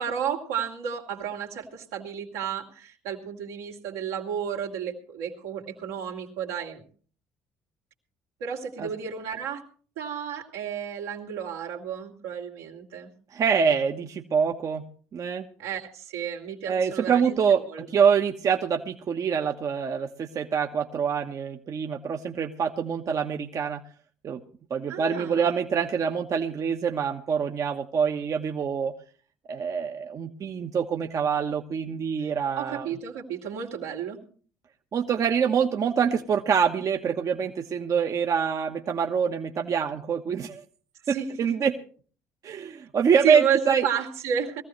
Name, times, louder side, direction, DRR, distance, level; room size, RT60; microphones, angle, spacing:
voice 1, 0.0-6.8 8.4-9.6 10.0-13.1 15.6-17.4 17.7-17.9 24.9-25.6 32.6-34.2 41.0-41.5 43.2-44.6, right 8 dB, 85° right, -1 dB, 2.7 m, -32 dB
voice 2, 13.3-14.8 15.1-15.4 16.7-23.8 24.2-24.4 24.7-28.9 29.5-32.9 34.9-40.6 41.1-41.7 42.4-43.9, right 6 dB, 50° right, 3 dB, 1.2 m, -25 dB
21.0 x 15.0 x 3.2 m, 0.42 s
hypercardioid pair, 60°, 7 cm